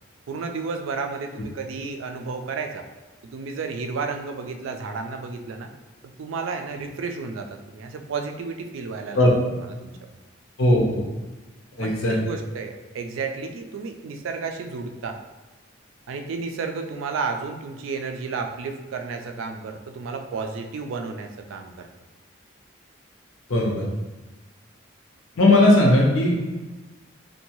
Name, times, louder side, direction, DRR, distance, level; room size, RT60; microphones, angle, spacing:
voice 1, 0.3-2.9 3.3-5.7 6.2-9.2 9.6-10.2 11.8-15.2 16.1-21.9, right 4 dB, 85° right, 5 dB, 0.3 m, -32 dB
voice 2, 10.6-11.0 11.8-12.2 23.5-23.8 25.4-26.6, left 1 dB, 90° left, -1 dB, 0.7 m, -18 dB
2.6 x 2.2 x 2.9 m, 1.2 s
head